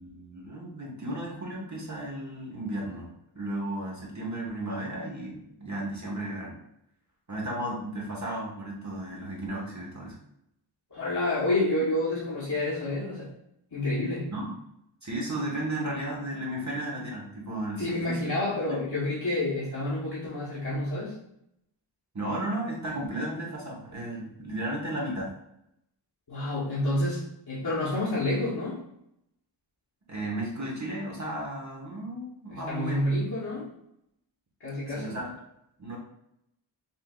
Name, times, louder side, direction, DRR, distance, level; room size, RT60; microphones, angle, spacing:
voice 1, 0.0-3.1 3.3-6.5 7.3-10.2 14.3-14.5 15.0-18.3 18.6-18.8 22.1-25.3 30.1-33.1 34.9-35.3 35.8-36.0, right 1 dB, 35° right, -3 dB, 1.2 m, -34 dB
voice 2, 10.9-13.3 13.7-14.3 17.8-21.2 26.3-28.8 32.5-33.7 34.6-35.2, left 1 dB, 50° left, -9 dB, 1.3 m, -29 dB
5.6 x 2.7 x 2.4 m, 0.79 s
wide cardioid pair, 85°, 49 cm